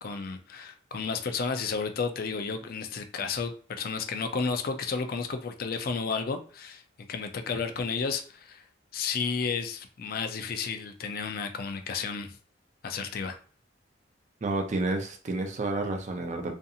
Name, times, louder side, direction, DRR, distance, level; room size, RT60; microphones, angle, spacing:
voice 1, 0.0-6.8 7.1-8.6 8.9-12.4 12.8-13.4, left 5 dB, 50° left, 7 dB, 0.4 m, -32 dB
voice 2, 14.4-16.5, right 2 dB, 35° right, 4 dB, 0.4 m, -30 dB
2.5 x 2.4 x 2.7 m, 0.42 s
head